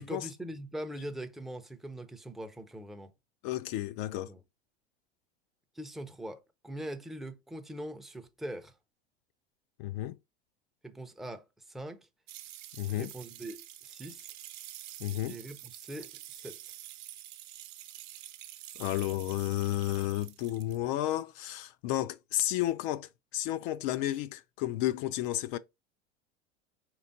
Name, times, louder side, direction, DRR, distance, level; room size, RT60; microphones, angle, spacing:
voice 1, 0.0-3.1 4.1-4.4 5.7-8.7 10.8-12.1 12.9-14.3 15.1-16.6, right 1 dB, ahead, 0.5 m, -42 dB
voice 2, 3.4-4.3 9.8-10.2 12.8-13.1 15.0-15.4 18.8-25.6, left 14 dB, 55° left, 0.4 m, -32 dB
sound 1, 12.3-20.8, right 13 dB, 60° right, 0.8 m, -47 dB
4.5 x 3.3 x 2.6 m
hypercardioid pair, 90°, 32 cm